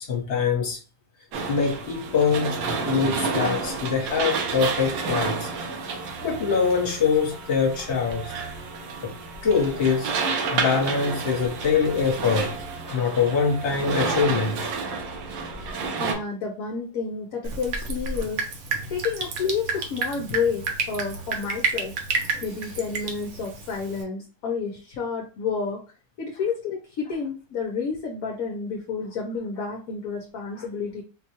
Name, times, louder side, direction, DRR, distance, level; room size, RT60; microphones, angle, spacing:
voice 1, 0.1-0.8 1.5-2.6 2.8-5.5 5.8-8.3 9.0-9.1 9.4-10.1 10.5-12.5 12.8-14.9 30.6-30.7, left 5 dB, 45° left, 1.2 m, -24 dB
sound 1, 1.3-16.1, right 4 dB, 90° right, 1.5 m, -30 dB
voice 2, 16.0-18.5 18.9-21.9 22.4-25.8 26.2-31.0, left 5 dB, 65° left, 0.9 m, -30 dB
Drip, 17.4-24.0, right 4 dB, 65° right, 1.0 m, -30 dB
4.4 x 2.2 x 2.8 m
omnidirectional pair, 2.0 m